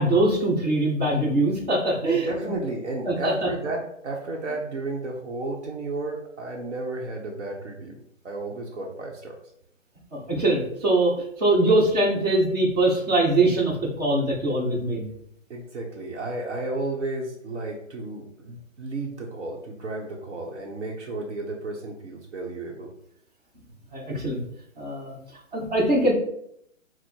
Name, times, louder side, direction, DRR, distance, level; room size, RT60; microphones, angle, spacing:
voice 1, 0.0-2.5 3.1-3.3 10.1-15.1 23.9-24.4 24.8-25.1 25.5-26.1, right 2 dB, 30° right, -4 dB, 1.1 m, -22 dB
voice 2, 2.0-9.3 15.5-22.9, right 2 dB, 60° right, 0 dB, 0.9 m, -32 dB
4.4 x 2.1 x 4.4 m, 0.71 s
hypercardioid pair, 170°, 40 cm